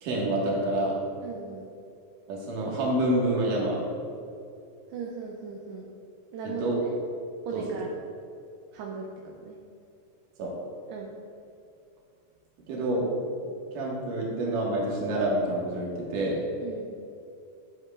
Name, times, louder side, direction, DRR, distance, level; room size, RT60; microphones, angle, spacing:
voice 1, 0.0-1.0 2.3-3.9 6.6-6.8 7.5-7.6 10.4-10.5 12.7-13.1 13.7-16.4, right 1 dB, 60° right, -3 dB, 2.7 m, -27 dB
voice 2, 1.2-1.7 4.9-5.9 6.3-6.9 7.5-7.9 8.7-9.6 10.9-11.1 16.6-16.9, right 4 dB, 80° right, -1 dB, 2.7 m, -37 dB
13.5 x 7.7 x 2.4 m, 2.5 s
omnidirectional pair, 5.0 m